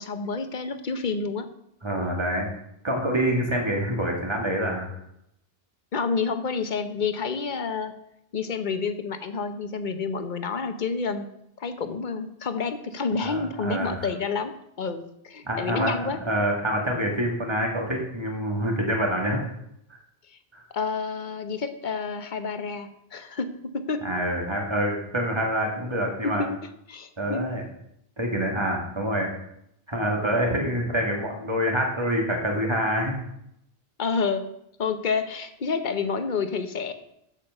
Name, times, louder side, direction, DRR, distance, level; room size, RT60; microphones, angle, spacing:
voice 1, 0.0-1.5 5.9-7.9 8.3-11.3 11.6-16.2 20.3-20.4 20.7-24.1 26.2-26.6 26.9-27.5 34.0-34.5 34.8-36.9, left 5 dB, 50° left, 9 dB, 1.0 m, -29 dB
voice 2, 1.8-2.5 2.8-4.9 13.2-14.1 15.4-19.4 20.5-20.6 24.0-26.5 27.2-27.6 28.2-29.3 29.9-33.2, equal, 25° right, 1 dB, 2.2 m, -26 dB
8.8 x 7.8 x 6.6 m, 0.78 s
omnidirectional pair, 1.1 m